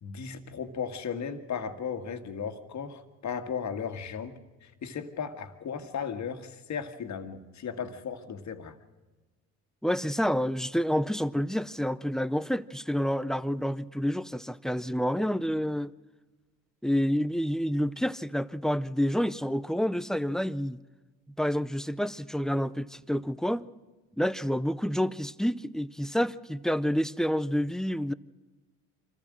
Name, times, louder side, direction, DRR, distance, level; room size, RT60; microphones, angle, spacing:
voice 1, 0.0-4.3 4.6-8.8, left 6 dB, 50° left, 1.9 m, -36 dB
voice 2, 9.8-15.9 16.8-20.8 21.4-23.6 24.2-28.1, equal, ahead, 0.6 m, -28 dB
25.0 x 14.5 x 7.7 m
supercardioid pair, 75°, 35 cm